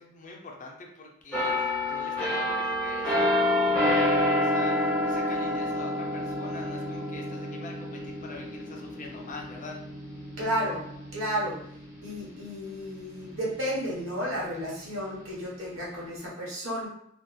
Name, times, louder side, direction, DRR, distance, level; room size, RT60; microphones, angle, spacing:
voice 1, 0.0-9.8, left 3 dB, 40° left, 0 dB, 0.4 m, -43 dB
sound 1, 1.3-12.9 13.3-13.5, left 1 dB, 5° left, 0.7 m, -28 dB
voice 2, 10.4-10.8 11.1-11.6 12.0-16.9, equal, 70° right, -5 dB, 1.0 m, -32 dB
2.7 x 2.2 x 2.2 m, 0.71 s
head